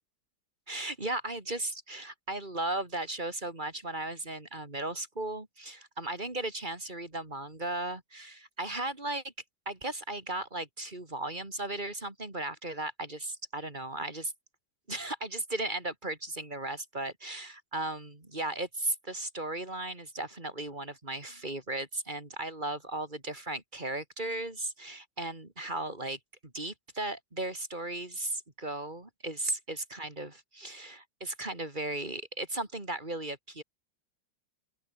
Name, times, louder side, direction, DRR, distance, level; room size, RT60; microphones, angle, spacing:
voice 1, 0.7-9.3 9.7-14.3 14.9-33.6, right 2 dB, 25° right, 3.9 m, -36 dB
open air
omnidirectional pair, 2.1 m